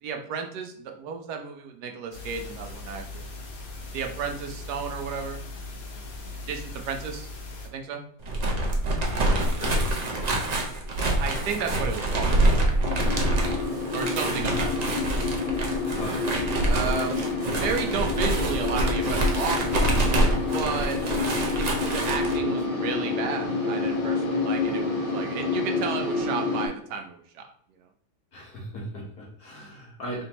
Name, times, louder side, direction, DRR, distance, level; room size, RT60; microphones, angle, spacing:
voice 1, 0.0-3.3 3.9-5.4 6.3-7.3 7.6-8.0 11.2-12.6 13.9-15.1 16.6-19.9 20.5-21.0 21.6-27.5, right 6 dB, 80° right, 4 dB, 1.2 m, -33 dB
sound 1, 2.1-7.7, left 2 dB, 80° left, 1.5 m, -39 dB
sound 2, 8.2-22.4, right 1 dB, 55° right, 0.4 m, -26 dB
voice 2, 8.9-10.0 11.6-11.9 15.9-16.2 28.3-30.2, equal, 65° left, -3 dB, 1.9 m, -37 dB
sound 3, 12.8-26.7, left 3 dB, 35° left, 1.0 m, -28 dB
4.4 x 3.5 x 2.9 m, 0.63 s
omnidirectional pair, 1.7 m